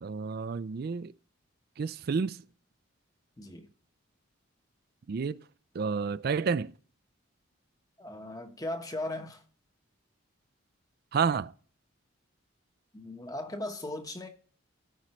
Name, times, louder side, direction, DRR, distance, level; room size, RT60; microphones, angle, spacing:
voice 1, 0.0-1.1 1.8-2.4 5.1-5.4 5.8-6.7 11.1-11.5, right 5 dB, 50° right, 0.3 m, -30 dB
voice 2, 8.0-9.4 12.9-14.3, left 1 dB, 15° left, 1.0 m, -37 dB
14.0 x 5.3 x 3.1 m
head